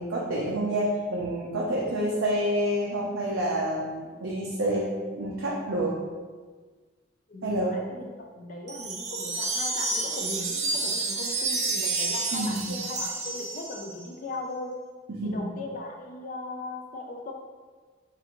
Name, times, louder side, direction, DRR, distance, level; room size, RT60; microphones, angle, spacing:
voice 1, 0.0-4.9 5.2-5.9 7.4-7.7 12.3-12.7 15.1-15.4, right 1 dB, 80° right, -4 dB, 0.6 m, -28 dB
voice 2, 7.3-14.7 15.2-17.3, left 2 dB, 40° left, 0 dB, 0.4 m, -38 dB
sound 1, 8.7-14.0, right 3 dB, 35° right, 0.3 m, -30 dB
4.7 x 2.6 x 2.9 m, 1.4 s
head